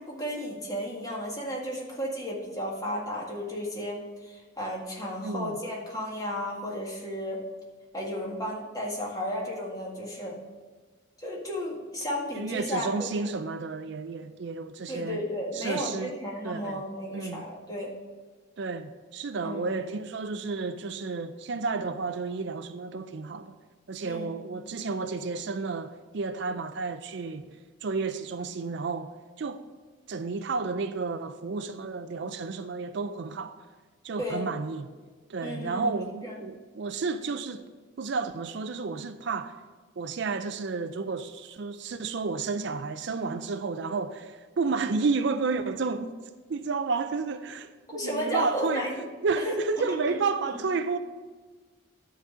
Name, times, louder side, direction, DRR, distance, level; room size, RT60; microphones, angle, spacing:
voice 1, 0.0-7.4 7.9-10.4 11.2-13.3 14.9-17.9 19.4-19.7 24.0-24.3 34.2-34.5 35.4-36.4 47.9-49.0 49.4-49.5 50.1-50.2, equal, 15° left, 1.8 m, -33 dB
voice 2, 5.2-5.5 12.3-15.2 15.5-16.1 16.4-16.8 17.1-17.5 18.6-23.6 23.9-29.6 30.1-33.5 34.0-34.9 35.3-37.7 38.0-39.5 40.0-46.1 46.5-51.0, right 4 dB, 60° right, 0.4 m, -31 dB
10.5 x 4.1 x 7.4 m
head